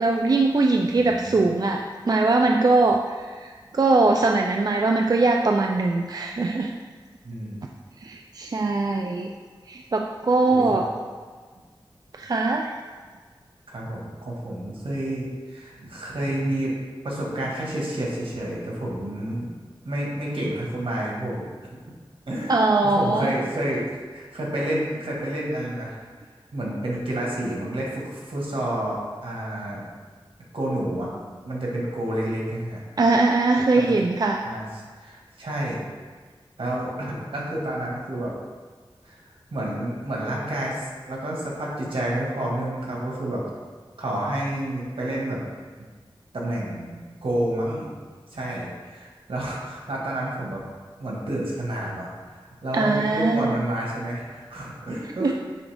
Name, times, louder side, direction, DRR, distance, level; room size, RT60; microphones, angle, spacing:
voice 1, 0.0-6.7 8.0-9.3 9.7-10.9 12.1-12.7 22.5-23.3 33.0-34.5 52.7-53.6 55.2-55.3, right 3 dB, 45° right, 2 dB, 0.4 m, -21 dB
voice 2, 0.9-1.4 7.2-7.6 10.5-10.8 13.7-16.8 17.0-19.5 19.8-21.4 21.7-21.8 22.3-22.6 22.8-23.8 24.1-26.0 26.5-29.8 30.5-31.1 31.4-32.8 33.7-34.0 34.4-34.6 35.0-35.8 36.6-38.3 39.0-39.2 39.5-43.4 44.0-45.4 46.3-47.9 48.3-50.6 51.0-55.3, right 1 dB, 90° right, -4 dB, 1.7 m, -29 dB
9.3 x 3.5 x 3.5 m, 1.5 s
wide cardioid pair, 80°, 9 cm